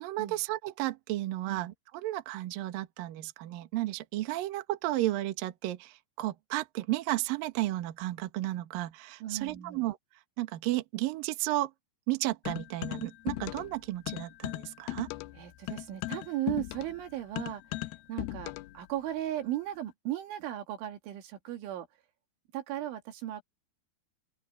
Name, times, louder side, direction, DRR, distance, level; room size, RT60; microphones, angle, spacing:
voice 1, 0.0-10.0 10.4-11.7 12.1-15.1, right 16 dB, 65° right, 2.6 m, -33 dB
voice 2, 9.2-9.9 15.4-17.6 18.1-21.9 22.5-23.4, right 13 dB, 90° right, 4.8 m, -36 dB
sound 1, 12.5-13.8 14.1-18.8, left 17 dB, 90° left, 2.2 m, -37 dB
open air
omnidirectional pair, 5.3 m